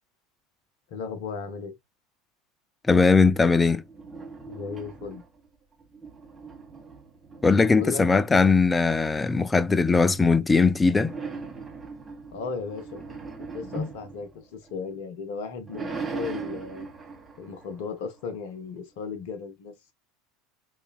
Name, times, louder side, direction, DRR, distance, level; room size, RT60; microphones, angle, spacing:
voice 1, 0.9-1.8 4.5-5.2 7.7-8.0 12.3-13.2 13.5-16.9 17.4-19.9, left 5 dB, 55° left, 1.0 m, -36 dB
voice 2, 2.9-3.8 7.4-11.1 13.8-13.9, left 4 dB, 15° left, 0.4 m, -20 dB
sound 1, 3.8-5.5 5.8-8.6 10.9-15.0 15.4-18.5, right 4 dB, 15° right, 1.9 m, -40 dB
4.3 x 3.4 x 2.3 m
figure-of-eight pair, 75°, 0 cm